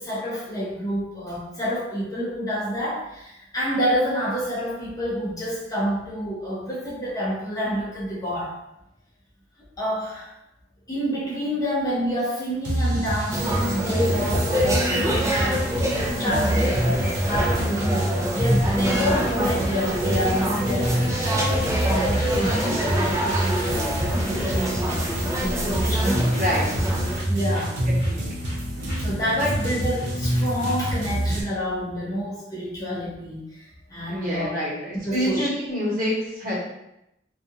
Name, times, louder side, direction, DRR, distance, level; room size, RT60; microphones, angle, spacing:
voice 1, 0.0-8.5 9.8-10.3 10.9-14.9 15.2-15.6 16.2-21.3 21.8-25.0 25.8-26.3 27.2-27.8 29.0-34.6 35.1-35.5, equal, 20° left, -7 dB, 0.6 m, -28 dB
sound 1, 12.6-31.4, right 1 dB, 70° right, 0.6 m, -26 dB
sound 2, 13.1-15.3 15.6-15.9 16.2-31.1, equal, 45° left, 0.9 m, -42 dB
sound 3, 13.3-27.2, equal, 15° right, 0.4 m, -26 dB
voice 2, 26.3-26.7 27.5-27.6 28.0-28.3 29.3-29.8 34.1-36.5, equal, 50° right, -7 dB, 1.1 m, -27 dB
2.5 x 2.4 x 2.6 m, 0.85 s
head